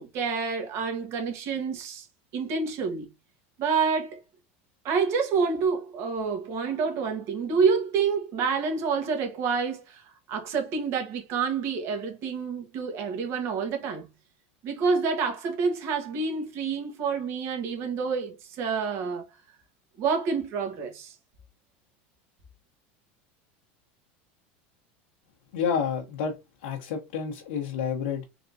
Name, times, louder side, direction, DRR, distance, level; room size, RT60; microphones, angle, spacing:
voice 1, 0.0-2.1 2.3-3.1 3.6-4.2 4.8-14.1 14.6-19.2 20.0-21.1, right 5 dB, 50° right, 1.5 m, -28 dB
voice 2, 25.5-26.4 26.6-28.2, left 7 dB, 85° left, 1.1 m, -29 dB
4.0 x 3.5 x 2.7 m
supercardioid pair, 135°, 6 cm